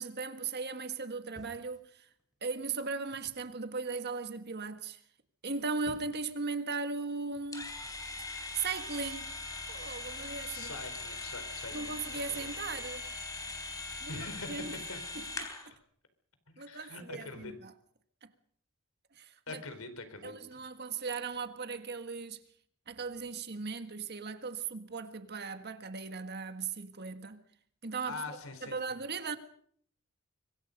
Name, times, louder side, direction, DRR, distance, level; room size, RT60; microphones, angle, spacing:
voice 1, 0.0-2.1 2.4-5.0 5.4-7.8 8.5-9.3 9.7-10.7 11.7-13.0 14.0-14.8 15.1-15.5 16.6-17.7 18.2-18.3 19.2-19.6 20.2-22.4 22.9-27.4 27.8-28.2 28.6-29.4, right 4 dB, 50° right, 1.7 m, -38 dB
sound 1, 1.3-2.4 3.1-3.5 5.5-6.4 7.3-7.6, equal, 5° right, 5.0 m, -55 dB
sound 2, 7.5-15.7, left 3 dB, 15° left, 3.9 m, -41 dB
voice 2, 10.5-12.5 13.9-15.0 16.5-17.5 19.5-20.6 28.1-29.0, left 3 dB, 85° left, 4.4 m, -44 dB
25.5 x 23.5 x 5.4 m
head